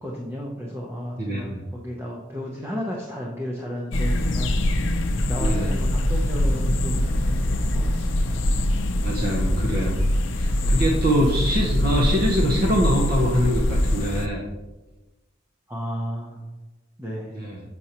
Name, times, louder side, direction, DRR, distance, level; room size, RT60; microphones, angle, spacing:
voice 1, 0.0-4.6 5.0-8.4 15.7-16.4 17.0-17.3, equal, 15° right, -2 dB, 0.7 m, -33 dB
voice 2, 1.2-1.6 5.4-5.8 9.0-9.9 10.3-14.4 17.3-17.6, equal, 50° right, -2 dB, 0.7 m, -24 dB
sound 1, 3.9-14.3, left 1 dB, 75° left, 0.6 m, -23 dB
6.8 x 6.2 x 2.9 m, 1.1 s
head